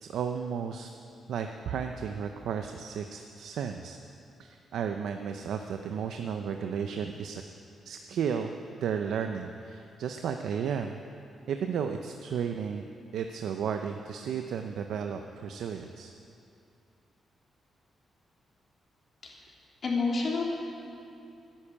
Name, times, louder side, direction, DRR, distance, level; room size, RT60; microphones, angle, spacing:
voice 1, 0.0-0.9 1.3-4.0 4.4-7.4 7.9-8.5 8.8-11.0 11.5-12.9 13.1-16.1, right 7 dB, 85° right, 5 dB, 0.7 m, -33 dB
voice 2, 19.8-20.4, left 4 dB, 45° left, -2 dB, 3.2 m, -28 dB
13.5 x 10.0 x 8.7 m, 2.5 s
cardioid pair, 130°, 0 cm